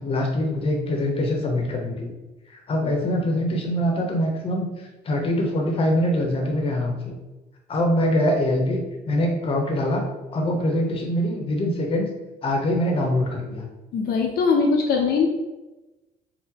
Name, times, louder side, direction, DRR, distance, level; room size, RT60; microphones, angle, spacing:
voice 1, 0.0-2.1 2.5-4.7 5.0-7.2 7.7-8.8 9.1-10.0 10.3-12.1 12.4-13.7, left 1 dB, 35° left, 1 dB, 0.7 m, -23 dB
voice 2, 13.9-15.3, left 5 dB, 70° left, 1 dB, 0.5 m, -21 dB
2.8 x 2.0 x 3.6 m, 1.1 s
cardioid pair, 110°, 17 cm